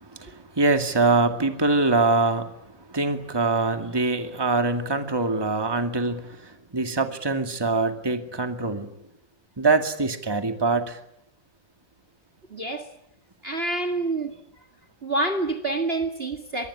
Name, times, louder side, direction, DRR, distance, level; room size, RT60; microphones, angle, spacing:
voice 1, 0.0-2.6 2.9-9.0 9.6-11.0, right 3 dB, 15° right, 7 dB, 2.2 m, -24 dB
voice 2, 12.5-12.9 13.4-14.3 15.0-16.7, right 2 dB, 30° right, 8 dB, 2.1 m, -27 dB
24.0 x 23.0 x 9.9 m, 0.77 s
omnidirectional pair, 2.0 m